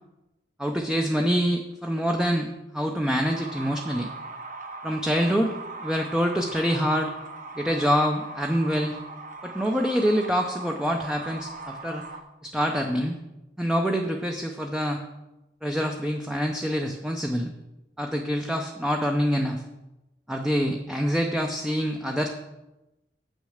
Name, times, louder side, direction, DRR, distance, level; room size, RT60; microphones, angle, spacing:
voice 1, 0.6-4.1 4.8-5.5 5.8-7.1 7.6-9.0 9.4-12.0 12.4-13.1 13.6-15.0 15.6-17.5 18.0-19.6 20.3-22.3, equal, 5° right, 2 dB, 0.6 m, -26 dB
sound 1, 3.2-12.2, right 3 dB, 50° right, 0.9 m, -40 dB
7.6 x 6.4 x 6.4 m, 0.97 s
head